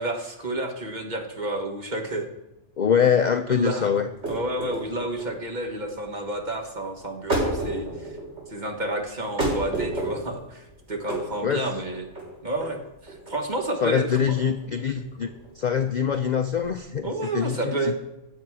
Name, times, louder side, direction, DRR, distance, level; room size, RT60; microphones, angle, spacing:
voice 1, 0.0-2.3 3.5-3.9 4.3-8.2 8.5-12.0 12.4-12.8 13.0-14.3 17.0-18.0, right 1 dB, 35° right, 3 dB, 1.5 m, -30 dB
voice 2, 2.8-4.1 11.4-11.7 13.8-15.3 15.5-18.0, left 7 dB, 70° left, 7 dB, 0.4 m, -24 dB
sound 1, 4.1-17.0, right 1 dB, 55° right, 5.4 m, -32 dB
15.5 x 7.2 x 4.8 m, 0.92 s
omnidirectional pair, 1.4 m